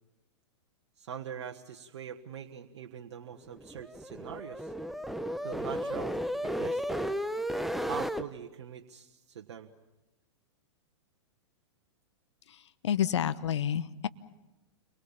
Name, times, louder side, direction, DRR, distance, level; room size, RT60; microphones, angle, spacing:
voice 1, 1.0-4.7 5.4-6.1 6.4-7.0 7.9-9.7, right 8 dB, 70° right, 2 dB, 1.5 m, -43 dB
sound 1, 3.5-8.2, equal, ahead, 0.9 m, -34 dB
voice 2, 12.8-14.1, left 9 dB, 70° left, 14 dB, 1.1 m, -29 dB
29.5 x 23.5 x 7.3 m, 1.0 s
hypercardioid pair, 110°, 15 cm